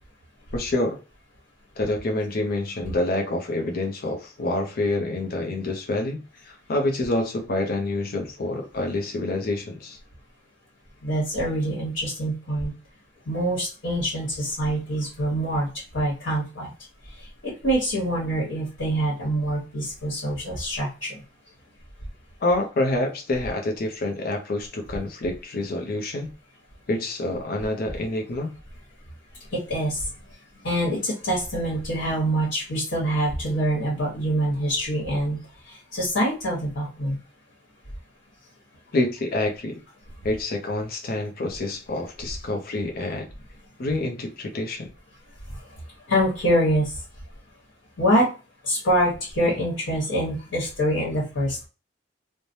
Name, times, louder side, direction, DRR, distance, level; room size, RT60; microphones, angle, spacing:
voice 1, 0.5-1.0 1.8-10.0 22.4-26.3 26.9-28.5 38.9-39.8 40.2-43.3 43.8-44.9, left 2 dB, 50° left, 0.5 m, -27 dB
voice 2, 11.0-12.7 13.3-15.7 15.9-16.7 17.4-21.2 29.5-30.0 30.6-35.4 35.9-37.2 46.1-46.9 48.0-48.3 48.7-51.7, equal, 90° left, 1.2 m, -25 dB
3.1 x 2.1 x 2.6 m
head